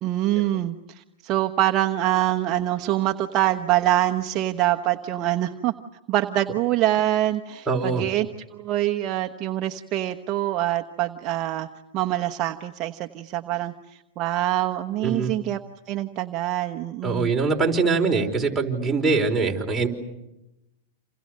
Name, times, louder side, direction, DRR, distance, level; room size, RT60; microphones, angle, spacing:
voice 1, 0.0-5.7 6.1-11.7 11.9-15.6 15.9-17.3, right 14 dB, 40° right, 5 dB, 1.1 m, -25 dB
voice 2, 7.7-8.1 15.0-15.3 17.0-19.9, right 4 dB, 10° right, -1 dB, 4.9 m, -23 dB
29.0 x 28.5 x 6.6 m, 0.91 s
hypercardioid pair, 130°, 0 cm